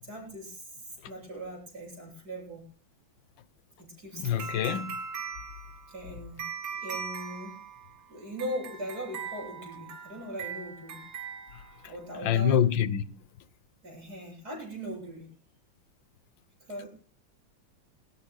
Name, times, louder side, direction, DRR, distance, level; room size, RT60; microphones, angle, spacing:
voice 1, 0.0-2.6 3.8-4.8 5.9-6.4 6.7-7.6 8.1-11.0 11.8-12.6 13.8-15.3 16.7-16.9, equal, 55° right, 8.6 m, -40 dB
voice 2, 4.2-4.9 12.2-13.0, left 9 dB, 75° left, 1.6 m, -25 dB
sound 1, 4.4-12.1, right 6 dB, 80° right, 3.7 m, -40 dB
26.5 x 15.0 x 2.3 m
omnidirectional pair, 2.1 m